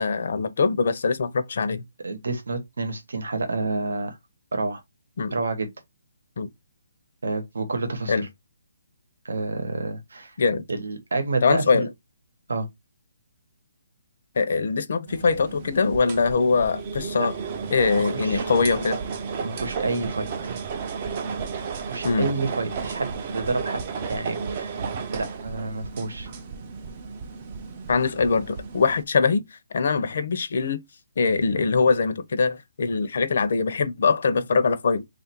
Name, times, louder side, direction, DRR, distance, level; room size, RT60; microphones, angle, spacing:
voice 1, 0.0-1.8 5.2-5.3 6.4-6.5 8.1-8.2 10.4-10.6 11.4-11.9 14.3-17.3 17.7-19.0 22.0-22.3 27.9-30.8 31.2-35.0, left 4 dB, 50° left, 0.6 m, -22 dB
voice 2, 2.0-4.2 4.5-4.8 5.3-5.7 7.2-8.3 9.2-10.3 10.7-11.9 12.5-12.7 17.2-17.3 18.1-18.4 19.4-20.5 21.8-23.8 24.1-26.3, right 3 dB, 85° right, 1.0 m, -29 dB
sound 1, 15.1-29.0, right 5 dB, 25° right, 0.4 m, -33 dB
3.1 x 2.5 x 4.3 m
hypercardioid pair, 175°, 0 cm